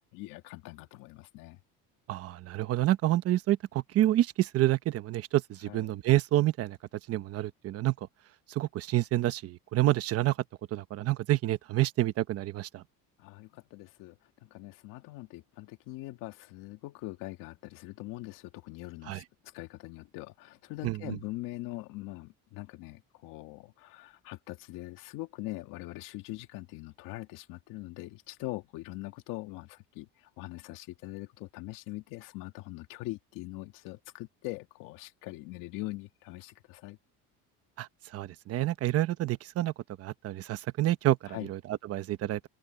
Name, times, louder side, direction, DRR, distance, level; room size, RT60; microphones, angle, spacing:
voice 1, 0.1-1.6 5.7-5.9 13.2-19.2 19.5-37.0 41.3-41.5, left 19 dB, 70° left, 1.9 m, -42 dB
voice 2, 2.1-6.8 7.1-7.9 8.5-10.4 10.7-12.8 19.1-19.2 20.8-21.2 37.8-39.7 40.0-42.4, right 15 dB, 45° right, 1.1 m, -28 dB
open air
cardioid pair, 165°, 33 cm